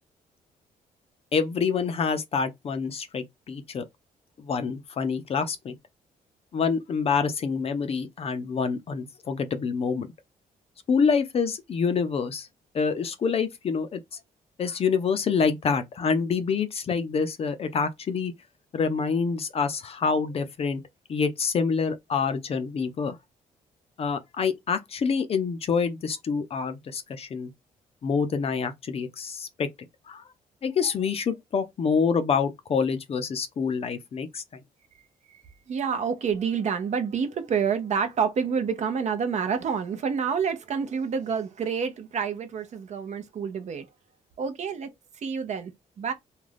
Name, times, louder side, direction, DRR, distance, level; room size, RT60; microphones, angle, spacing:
voice 1, 1.3-3.8 4.4-5.7 6.5-10.1 10.9-12.5 12.7-14.0 14.6-18.3 18.7-20.8 21.1-23.2 24.0-27.5 28.0-29.7 30.1-30.2 30.6-34.4, left 5 dB, 40° left, 0.5 m, -26 dB
voice 2, 35.7-43.9 44.4-44.9 45.2-45.7 46.0-46.1, right 6 dB, 55° right, 0.6 m, -28 dB
2.4 x 2.2 x 3.3 m
cardioid pair, 110°, 15 cm